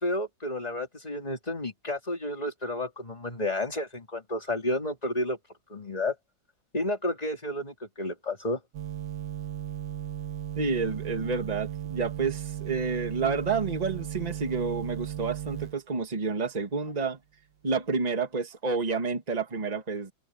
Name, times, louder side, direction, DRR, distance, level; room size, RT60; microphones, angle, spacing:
voice 1, 0.0-5.4 5.7-6.1 6.7-8.6, left 1 dB, 20° left, 3.2 m, -31 dB
sound 1, 8.7-15.8, right 11 dB, 75° right, 2.0 m, -36 dB
voice 2, 10.6-17.2 17.6-20.1, right 4 dB, 20° right, 1.8 m, -29 dB
omnidirectional pair, 2.2 m